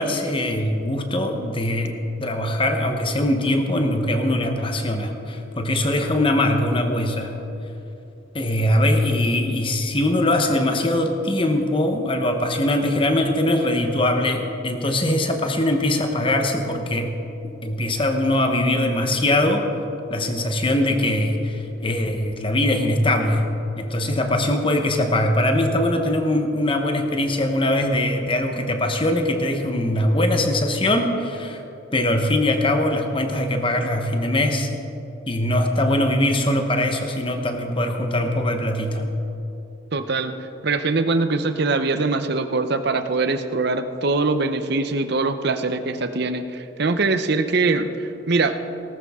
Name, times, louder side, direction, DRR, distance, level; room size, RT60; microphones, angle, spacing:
voice 1, 0.0-7.4 8.3-17.2 17.4-19.7 20.1-23.4 23.8-31.6 31.9-34.7 35.3-39.1, left 1 dB, 25° left, 5 dB, 1.0 m, -22 dB
voice 2, 39.9-48.6, right 3 dB, 50° right, 9 dB, 0.7 m, -23 dB
18.5 x 13.0 x 3.7 m, 2.9 s
head